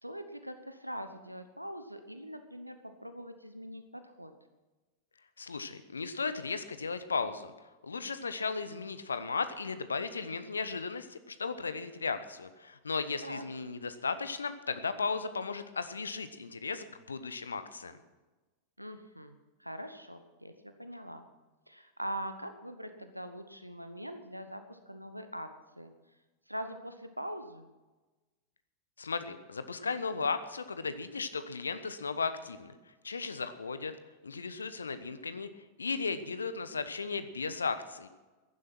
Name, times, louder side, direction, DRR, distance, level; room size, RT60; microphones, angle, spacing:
voice 1, 0.0-4.3 13.2-13.4 18.8-21.3 21.7-25.9 26.5-27.7, equal, 90° right, 9 dB, 1.0 m, -42 dB
voice 2, 5.4-7.5 7.8-17.9 29.0-32.7 33.0-33.9 34.2-35.5 35.8-38.1, left 4 dB, 75° left, 12 dB, 1.0 m, -35 dB
15.5 x 11.5 x 6.1 m, 1.2 s
figure-of-eight pair, 90°, 0 cm